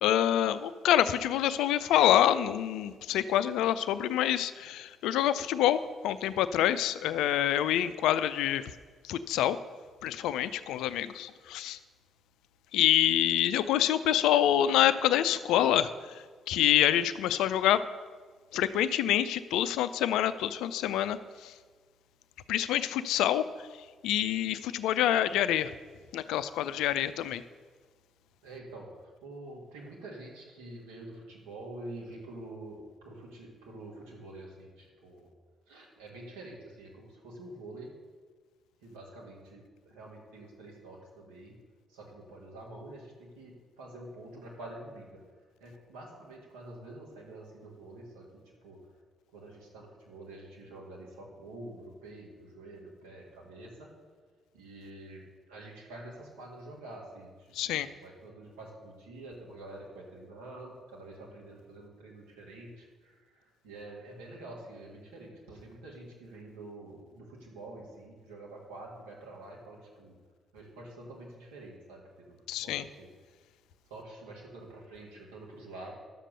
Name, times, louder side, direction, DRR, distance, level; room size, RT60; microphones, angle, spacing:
voice 1, 0.0-8.7 9.0-9.6 10.0-11.8 12.7-17.8 18.5-21.5 22.5-23.4 24.0-25.7 26.1-27.4 57.5-57.9 72.5-72.9, left 11 dB, 70° left, 13 dB, 0.4 m, -26 dB
voice 2, 28.4-35.3 35.7-37.9 38.8-41.5 41.9-45.2 45.6-48.8 49.3-53.9 54.5-70.1 70.5-73.1 73.9-75.9, right 2 dB, 80° right, -2 dB, 2.4 m, -47 dB
11.0 x 7.4 x 6.7 m, 1.5 s
hypercardioid pair, 40°, 0 cm